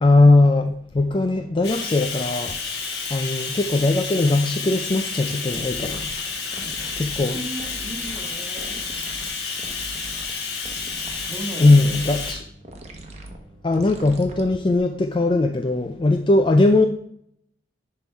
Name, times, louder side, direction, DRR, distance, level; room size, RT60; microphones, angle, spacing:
voice 1, 0.0-2.6 3.1-6.1 7.0-7.4 11.6-12.4 13.6-16.9, left 2 dB, 25° left, 0.4 m, -19 dB
Bathtub (filling or washing), 1.6-12.3, left 5 dB, 60° left, 1.4 m, -30 dB
sound 1, 5.5-14.8, right 1 dB, 35° right, 1.0 m, -41 dB
voice 2, 6.4-9.2 11.3-12.2, right 1 dB, 5° right, 1.7 m, -37 dB
10.5 x 3.7 x 4.5 m
head